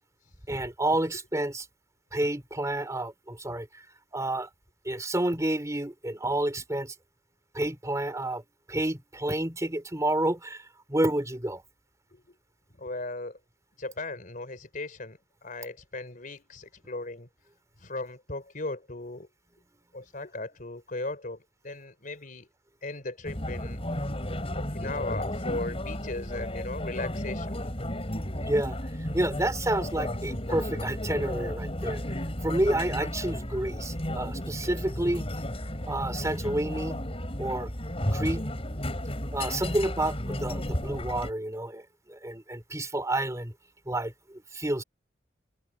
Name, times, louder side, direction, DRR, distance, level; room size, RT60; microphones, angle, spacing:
voice 1, 0.5-1.6 2.1-3.7 4.1-4.5 4.8-6.9 7.5-8.4 8.7-10.6 10.9-11.6 28.4-28.8 29.1-32.0 32.4-35.3 35.9-37.0 37.4-37.7 38.1-38.5 39.3-41.8 42.1-43.5 43.9-44.8, right 1 dB, 15° right, 3.3 m, -29 dB
voice 2, 12.8-13.4 13.8-17.3 17.8-19.3 19.9-22.5 22.8-23.8 24.5-27.6, left 2 dB, 50° left, 4.2 m, -37 dB
sound 1, 23.2-41.3, left 1 dB, 30° left, 7.4 m, -33 dB
head